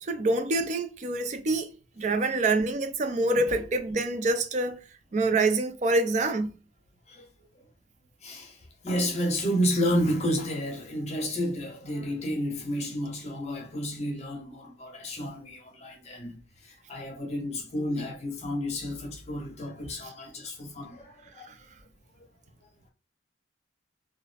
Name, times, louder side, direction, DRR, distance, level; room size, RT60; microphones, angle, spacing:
voice 1, 0.0-1.7 2.0-4.8 5.1-6.5, right 2 dB, 40° right, 0.4 m, -26 dB
voice 2, 8.2-8.6 8.8-16.3 16.6-21.5 22.2-22.3, equal, 35° left, 0.7 m, -31 dB
2.4 x 2.0 x 3.2 m
head